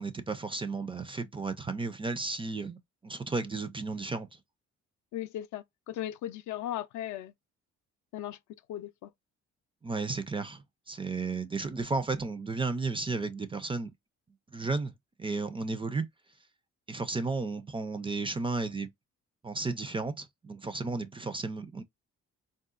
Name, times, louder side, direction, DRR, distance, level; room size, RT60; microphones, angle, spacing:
voice 1, 0.0-4.3 9.8-13.9 14.5-14.9 15.2-16.1 16.9-18.9 19.4-21.8, right 3 dB, 20° right, 0.3 m, -33 dB
voice 2, 5.1-7.3 8.1-8.4 8.7-9.1, left 12 dB, 75° left, 0.5 m, -37 dB
3.8 x 2.0 x 2.4 m
cardioid pair, 90°, 30 cm